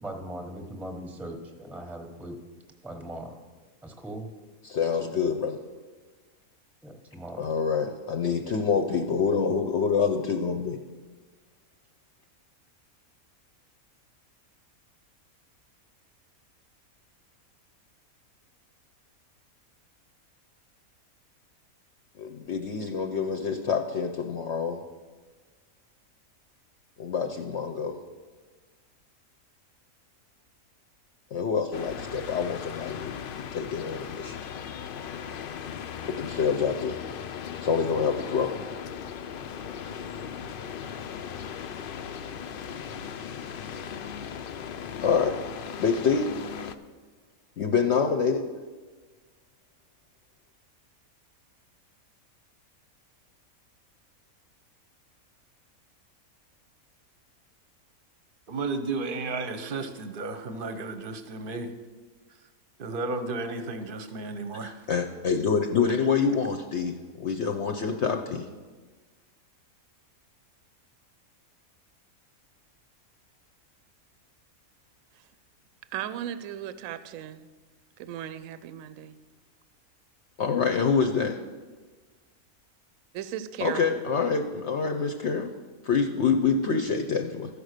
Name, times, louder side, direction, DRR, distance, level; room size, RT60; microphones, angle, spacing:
voice 1, 0.0-2.4 2.8-3.4 3.8-4.3 6.8-7.6, right 1 dB, ahead, 5 dB, 0.8 m, -39 dB
voice 2, 4.6-5.6 7.4-10.8 22.2-24.8 27.0-28.0 31.3-34.4 36.0-37.0 37.6-38.6 45.0-45.4 45.8-46.3 47.6-48.5 64.6-68.5 80.4-81.4 83.6-85.5 85.8-87.6, left 6 dB, 60° left, 4 dB, 0.8 m, -26 dB
sound 1, 31.7-46.7, left 8 dB, 75° left, 0.5 m, -38 dB
voice 3, 58.5-61.7 62.8-64.7, right 3 dB, 45° right, 9 dB, 0.8 m, -33 dB
voice 4, 75.9-77.5 78.0-79.2 83.1-83.9, right 11 dB, 70° right, 13 dB, 0.9 m, -36 dB
14.0 x 5.0 x 6.5 m, 1.3 s
omnidirectional pair, 1.5 m